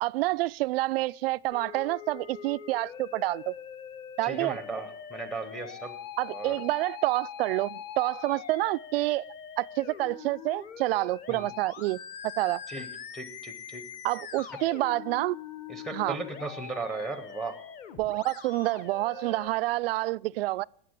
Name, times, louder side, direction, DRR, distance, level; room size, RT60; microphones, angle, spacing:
voice 1, 0.0-3.5 4.2-4.6 6.2-9.3 9.6-12.0 12.4-12.6 14.0-15.4 15.9-16.2 18.0-20.6, right 19 dB, 85° right, 0.4 m, -28 dB
Musical instrument, 1.5-19.5, left 8 dB, 30° left, 0.9 m, -43 dB
voice 2, 4.2-5.9 6.3-6.6 11.3-11.5 12.7-12.9 13.1-13.8 15.7-17.6, right 3 dB, ahead, 0.7 m, -36 dB
12.5 x 8.4 x 9.6 m
supercardioid pair, 175°, 29 cm